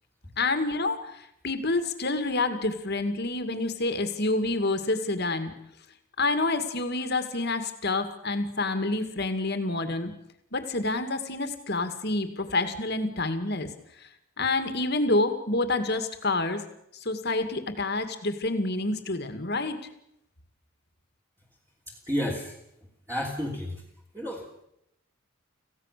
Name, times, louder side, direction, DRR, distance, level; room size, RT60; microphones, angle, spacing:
voice 1, 0.4-5.5 6.2-10.1 10.5-13.7 14.4-16.6 17.0-19.8, left 2 dB, 50° left, 8 dB, 2.3 m, -28 dB
voice 2, 21.9-22.6 23.1-23.8 24.1-24.4, equal, 15° right, -4 dB, 3.1 m, -31 dB
26.5 x 16.0 x 6.8 m, 0.79 s
head